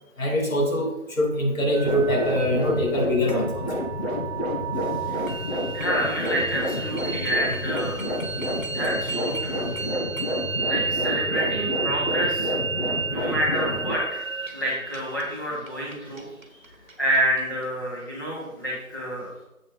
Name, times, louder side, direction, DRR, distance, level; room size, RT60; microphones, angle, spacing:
voice 1, 0.2-3.6, equal, 70° left, 0 dB, 2.6 m, -23 dB
sound 1, 1.7-17.7, right 4 dB, 65° right, 1.3 m, -32 dB
sound 2, 1.8-14.0, left 1 dB, 45° left, 1.5 m, -29 dB
voice 2, 5.7-8.0 8.4-9.8 10.7-12.5 13.1-14.3 14.5-16.3 17.0-19.3, equal, 15° left, -7 dB, 1.7 m, -28 dB
7.8 x 5.6 x 5.3 m, 0.96 s
figure-of-eight pair, 170°, 42 cm